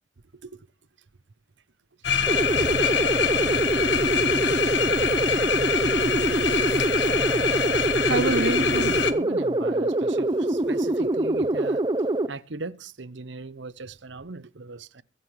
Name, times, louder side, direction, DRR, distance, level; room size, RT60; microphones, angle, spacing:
sound 1, 2.0-9.1, left 7 dB, 65° left, 1.5 m, -25 dB
sound 2, 2.3-12.3, right 2 dB, 25° right, 0.7 m, -24 dB
voice 1, 7.8-11.9 12.3-15.0, right 3 dB, 70° right, 0.9 m, -34 dB
23.5 x 9.4 x 3.2 m
head